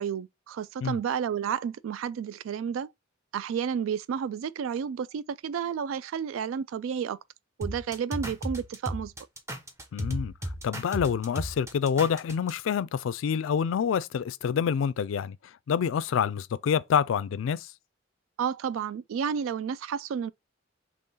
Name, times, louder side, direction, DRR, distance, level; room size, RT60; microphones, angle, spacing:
voice 1, 0.0-2.9 3.3-7.2 7.6-9.1 18.4-20.3, right 7 dB, 90° right, 0.3 m, -31 dB
sound 1, 7.6-12.5, equal, 15° right, 0.7 m, -35 dB
voice 2, 9.9-10.3 10.6-15.4 15.7-17.7, left 7 dB, 75° left, 0.3 m, -27 dB
3.8 x 3.1 x 3.9 m
head